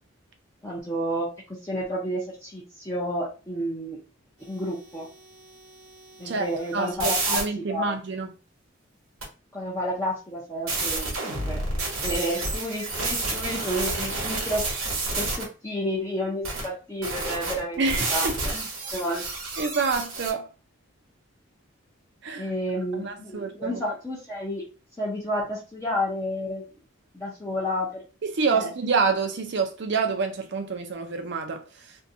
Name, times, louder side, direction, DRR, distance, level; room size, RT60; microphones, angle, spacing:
voice 1, 0.6-1.3 1.6-4.0 4.5-5.1 6.2-7.4 7.7-7.9 9.5-11.6 12.0-14.6 15.2-17.8 18.1-18.6 18.9-19.2 22.4-24.6 25.0-26.6 27.1-28.0 28.5-28.7, equal, 15° left, 0.5 m, -30 dB
sound 1, 5.7-7.4 9.2-9.3 10.7-15.4 16.4-16.6 17.0-20.3, right 3 dB, 80° right, 1.0 m, -30 dB
voice 2, 6.7-8.3 17.8-18.3 19.6-20.5 22.2-22.5 22.9-23.8 28.2-31.9, right 4 dB, 55° right, 0.5 m, -27 dB
2.6 x 2.2 x 2.6 m
head